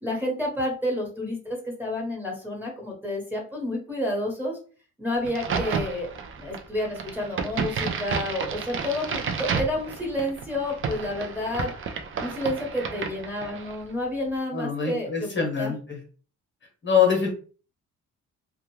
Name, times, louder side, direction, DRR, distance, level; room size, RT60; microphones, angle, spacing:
voice 1, 0.0-4.6 5.0-11.7 12.2-15.7, left 1 dB, 5° right, -2 dB, 1.1 m, -30 dB
Crack, 5.2-13.8, right 5 dB, 45° right, 0.5 m, -31 dB
voice 2, 14.5-16.0 16.8-17.3, left 6 dB, 40° left, 0 dB, 0.9 m, -24 dB
2.4 x 2.2 x 3.0 m, 0.39 s
cardioid pair, 90°, 30 cm